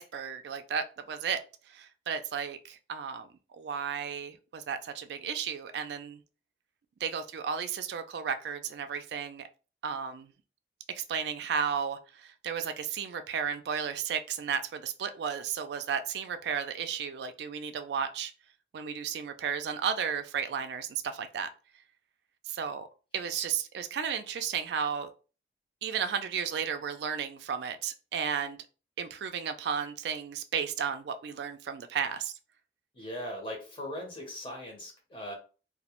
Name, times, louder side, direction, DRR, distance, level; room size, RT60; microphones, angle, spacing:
voice 1, 0.0-1.4 1.7-3.3 3.6-6.2 7.0-9.5 9.8-10.3 11.0-18.3 18.7-21.5 22.5-22.9 23.1-25.1 25.8-28.6 29.0-32.3, right 7 dB, 75° right, 9 dB, 0.3 m, -33 dB
voice 2, 32.9-35.3, equal, 30° left, 0 dB, 0.7 m, -39 dB
2.2 x 2.0 x 2.9 m, 0.35 s
head